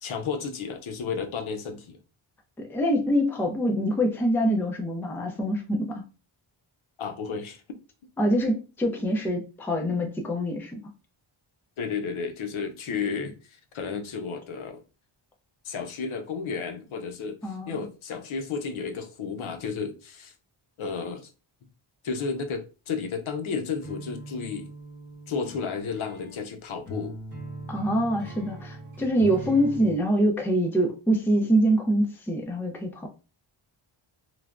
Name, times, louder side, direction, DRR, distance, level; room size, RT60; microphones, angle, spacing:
voice 1, 0.0-2.0 7.0-7.6 11.8-14.8 15.6-20.3 20.8-21.3 22.0-24.7 25.3-27.2, left 5 dB, 75° left, 0.7 m, -32 dB
voice 2, 2.6-6.0 8.2-10.8 17.4-17.8 27.7-33.1, equal, 5° left, 0.3 m, -25 dB
sound 1, 23.8-29.9, right 1 dB, 20° right, 0.9 m, -40 dB
3.1 x 2.1 x 2.4 m
wide cardioid pair, 150°, 48 cm